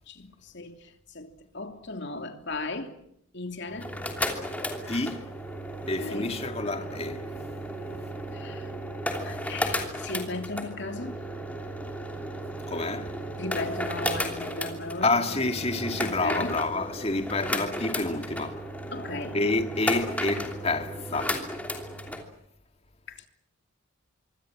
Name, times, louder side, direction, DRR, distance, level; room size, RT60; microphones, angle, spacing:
voice 1, 0.1-2.9 3.3-4.0 6.0-6.3 8.3-8.7 9.2-11.2 13.4-15.5 16.0-16.6 18.9-19.4 19.9-20.0 23.1-23.2, left 2 dB, 55° left, 3.1 m, -36 dB
sound 1, 3.7-22.2, equal, 5° left, 3.0 m, -34 dB
voice 2, 4.9-5.3 5.9-7.3 8.3-8.4 12.7-13.1 15.0-18.6 19.3-21.4, left 2 dB, 30° left, 2.2 m, -28 dB
25.5 x 25.0 x 7.6 m
head